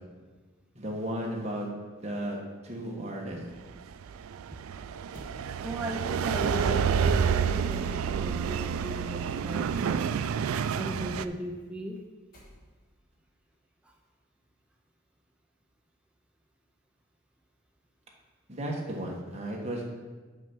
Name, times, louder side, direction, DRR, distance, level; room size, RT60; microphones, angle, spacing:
voice 1, 0.7-1.7 2.0-2.4 2.6-3.4 18.5-19.8, right 1 dB, 30° right, -1 dB, 1.3 m, -34 dB
sound 1, 3.7-11.2, right 7 dB, 90° right, 0.3 m, -29 dB
sound 2, 5.1-5.4 7.7-8.2 9.8-10.0 12.3-12.9, equal, 40° left, 1.7 m, -50 dB
voice 2, 5.6-10.1 10.8-12.0 13.8-13.9, equal, 5° right, 0 dB, 0.5 m, -37 dB
6.0 x 5.7 x 6.2 m, 1.4 s
head